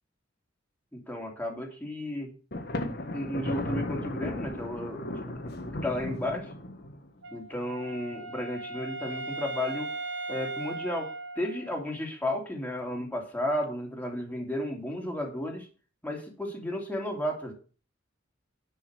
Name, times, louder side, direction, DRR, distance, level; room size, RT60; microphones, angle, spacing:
voice 1, 0.9-2.3 3.1-5.4 5.7-6.5 7.3-9.9 10.3-11.1 11.4-15.7 16.0-17.5, left 1 dB, 10° left, 0 dB, 2.9 m, -33 dB
Thunder, 2.5-7.1, left 1 dB, 55° left, 1.7 m, -35 dB
Wind instrument woodwind instrument, 7.2-12.0, right 3 dB, 65° right, 1.2 m, -38 dB
10.5 x 5.8 x 6.2 m, 0.36 s
head